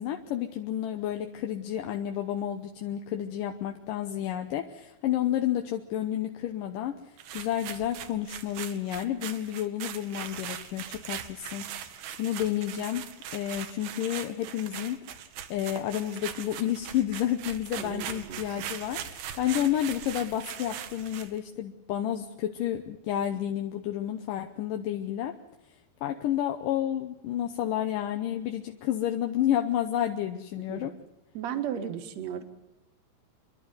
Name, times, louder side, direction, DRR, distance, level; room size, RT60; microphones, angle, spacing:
voice 1, 0.0-13.0 13.3-15.0 15.5-25.3 26.0-30.9, left 11 dB, 75° left, 5 dB, 2.4 m, -30 dB
sound 1, 7.2-21.4, right 10 dB, 85° right, 3.1 m, -40 dB
voice 2, 17.8-18.4 30.7-30.8 31.3-32.4, right 9 dB, 55° right, 8 dB, 2.4 m, -35 dB
27.5 x 11.5 x 9.4 m, 0.94 s
omnidirectional pair, 4.3 m